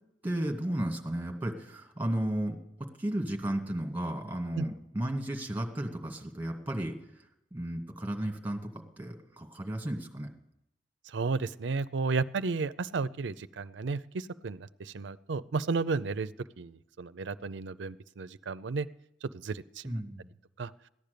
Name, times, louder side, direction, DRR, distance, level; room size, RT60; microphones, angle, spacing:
voice 1, 0.2-7.0 7.5-10.3 19.8-20.3, right 1 dB, 10° right, 2 dB, 2.0 m, -34 dB
voice 2, 11.1-16.3 16.6-18.9 19.2-19.9 20.6-20.7, right 4 dB, 70° right, 14 dB, 0.5 m, -33 dB
15.0 x 10.5 x 6.8 m, 0.82 s
head